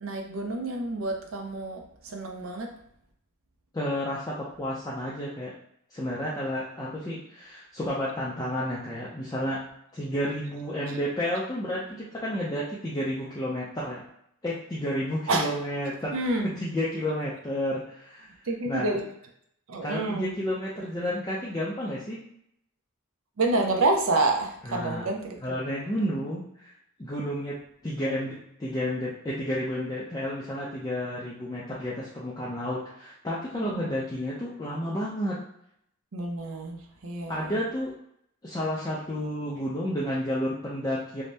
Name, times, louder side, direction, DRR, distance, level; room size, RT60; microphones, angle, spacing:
voice 1, 0.0-2.7 15.3-15.5 16.1-16.5 18.4-19.1 19.7-20.3 23.4-25.6 33.6-33.9 36.1-37.6, right 2 dB, 65° right, 2 dB, 0.5 m, -28 dB
voice 2, 3.7-5.5 5.9-9.6 9.9-14.0 14.4-16.1 16.6-18.3 18.7-19.0 19.8-22.2 24.6-25.1 25.4-26.7 27.0-27.6 27.8-35.4 37.3-37.9 38.4-41.2, equal, 15° left, -7 dB, 0.4 m, -31 dB
2.7 x 2.0 x 3.3 m, 0.72 s
head